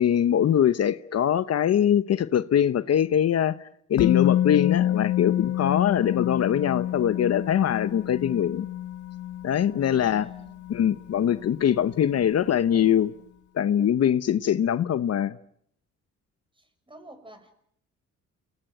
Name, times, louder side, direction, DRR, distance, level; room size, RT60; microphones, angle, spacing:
voice 1, 0.0-8.7 9.4-10.3 10.7-13.1 13.5-15.4, left 9 dB, 55° left, 1.0 m, -23 dB
Musical instrument, 4.0-11.9 12.2-12.3, left 12 dB, 75° left, 1.6 m, -28 dB
voice 2, 9.8-10.7 16.5-17.5, right 2 dB, 15° right, 6.8 m, -49 dB
28.5 x 19.5 x 9.2 m
cardioid pair, 90°, 30 cm